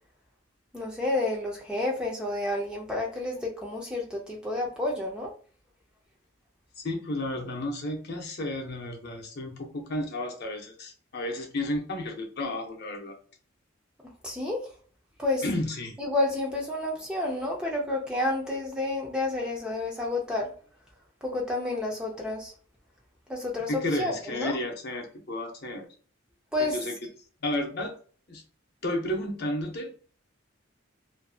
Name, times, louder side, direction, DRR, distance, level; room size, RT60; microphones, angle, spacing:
voice 1, 0.7-5.3 14.2-14.7 15.2-15.4 16.0-20.5 21.2-22.5 23.3-24.6 26.5-26.8, left 2 dB, 5° right, -2 dB, 0.4 m, -30 dB
voice 2, 6.8-13.2 15.4-16.0 23.7-25.9 26.6-26.9 27.4-28.0 28.3-28.4 28.8-29.9, left 1 dB, 50° left, 2 dB, 0.7 m, -32 dB
2.6 x 2.5 x 2.3 m, 0.42 s
head